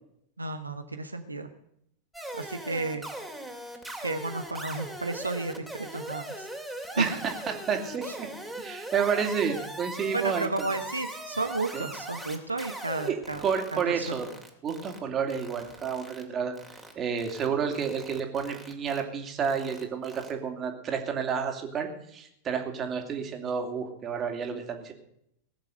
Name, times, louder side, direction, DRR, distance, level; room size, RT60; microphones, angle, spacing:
voice 1, 0.4-1.5 2.3-3.1 4.0-6.5 6.9-7.2 8.1-8.2 10.1-14.0, right 3 dB, 80° right, 6 dB, 1.1 m, -32 dB
sound 1, 2.1-15.0 15.3-16.2 16.6-16.9 17.2-17.5 17.7-19.0 19.4-20.3, right 1 dB, ahead, 2.7 m, -40 dB
voice 2, 7.5-8.3 8.6-10.5 11.7-11.9 13.1-13.2 13.4-14.3 14.6-16.5 16.9-24.9, right 6 dB, 25° right, 4 dB, 2.6 m, -30 dB
19.5 x 7.4 x 8.1 m, 0.74 s
figure-of-eight pair, 90°, 0 cm